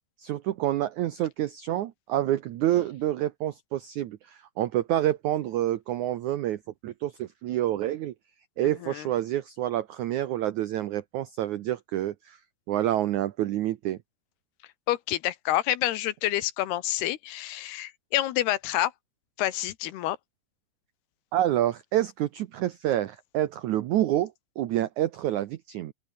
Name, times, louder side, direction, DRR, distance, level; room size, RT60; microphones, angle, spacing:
voice 1, 0.2-8.1 8.6-12.4 12.7-14.0 21.3-25.9, right 13 dB, 85° right, 1.7 m, -28 dB
voice 2, 8.6-9.1 14.9-18.9 19.4-20.2, left 14 dB, 80° left, 3.1 m, -28 dB
open air
omnidirectional pair, 4.7 m